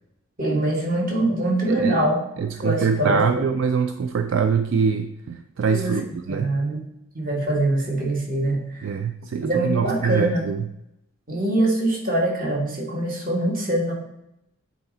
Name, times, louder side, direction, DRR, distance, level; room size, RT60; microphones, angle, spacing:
voice 1, 0.4-2.2 2.6-3.4 5.7-6.8 7.1-8.9 9.4-10.4 11.3-13.9, right 1 dB, 40° right, -1 dB, 1.5 m, -23 dB
voice 2, 1.7-2.0 2.4-6.5 8.8-10.7, right 6 dB, 60° right, 8 dB, 0.3 m, -24 dB
8.5 x 4.0 x 3.8 m, 0.84 s
head